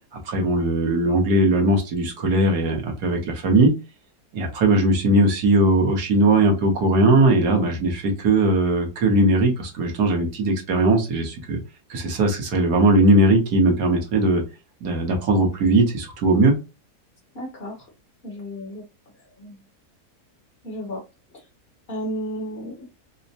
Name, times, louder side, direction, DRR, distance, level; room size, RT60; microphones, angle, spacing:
voice 1, 0.2-3.7 4.3-11.6 11.9-14.4 14.8-16.6, right 2 dB, 75° right, 1.5 m, -19 dB
voice 2, 17.3-17.7 18.2-18.8 19.4-19.6 20.6-21.0 21.9-22.9, equal, 45° left, 1.1 m, -32 dB
4.7 x 2.1 x 2.7 m
omnidirectional pair, 1.7 m